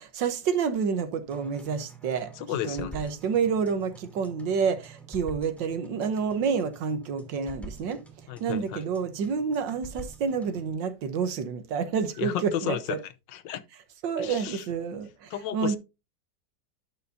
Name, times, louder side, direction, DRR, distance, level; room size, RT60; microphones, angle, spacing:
voice 1, 0.0-2.3 2.7-8.0 8.4-13.0 14.0-15.8, right 6 dB, 85° right, 1.8 m, -29 dB
sound 1, 1.3-10.7, right 3 dB, ahead, 2.2 m, -47 dB
voice 2, 2.4-3.1 8.3-8.8 12.2-13.6 14.2-14.6 15.3-15.8, left 10 dB, 80° left, 1.4 m, -33 dB
11.0 x 6.8 x 2.7 m
omnidirectional pair, 1.9 m